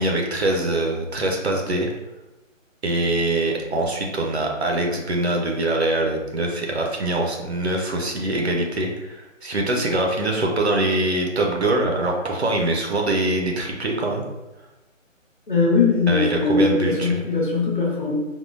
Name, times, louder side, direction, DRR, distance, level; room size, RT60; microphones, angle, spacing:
voice 1, 0.0-1.9 2.8-14.2 16.1-17.1, right 2 dB, 55° right, 1 dB, 0.5 m, -23 dB
voice 2, 15.5-18.1, left 3 dB, 40° left, -4 dB, 0.7 m, -20 dB
3.6 x 2.1 x 2.4 m, 1.1 s
hypercardioid pair, 175°, 40 cm